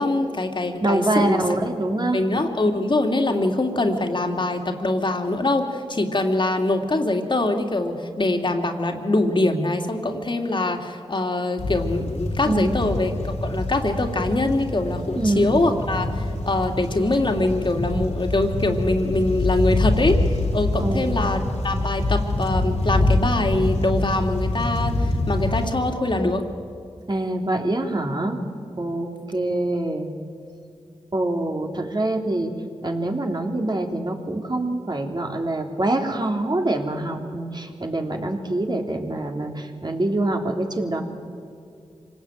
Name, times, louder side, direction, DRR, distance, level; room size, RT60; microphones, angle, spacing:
voice 1, 0.0-1.6 2.1-26.5, left 2 dB, 45° left, 4 dB, 2.8 m, -23 dB
voice 2, 0.8-2.2 12.4-12.7 15.1-15.6 20.8-21.2 27.1-28.4 28.8-30.1 31.1-32.5 32.8-41.0, right 2 dB, 40° right, 2 dB, 3.4 m, -25 dB
sound 1, 11.6-25.7, left 2 dB, 80° left, 3.0 m, -25 dB
25.5 x 18.5 x 9.1 m, 2.4 s
cardioid pair, 50°, 12 cm